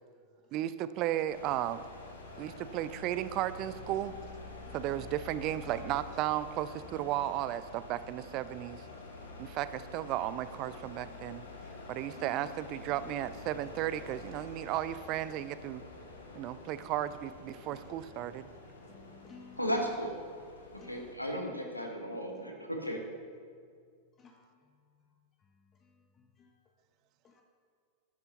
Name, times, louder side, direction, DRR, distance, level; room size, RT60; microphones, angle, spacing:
voice 1, 0.5-1.8 2.4-4.1 4.7-8.9 9.4-11.4 11.9-15.8 16.3-18.5, right 13 dB, 40° right, 0.4 m, -34 dB
sound 1, 1.3-21.1, left 3 dB, 70° left, 1.3 m, -48 dB
voice 2, 18.9-19.6 20.7-21.0 22.4-22.6 24.2-24.5 26.4-26.5 27.2-27.4, left 5 dB, 25° left, 0.8 m, -54 dB
voice 3, 19.6-20.1 20.7-23.0, equal, 85° left, 1.4 m, -35 dB
12.5 x 10.5 x 2.9 m
figure-of-eight pair, 90°, 0 cm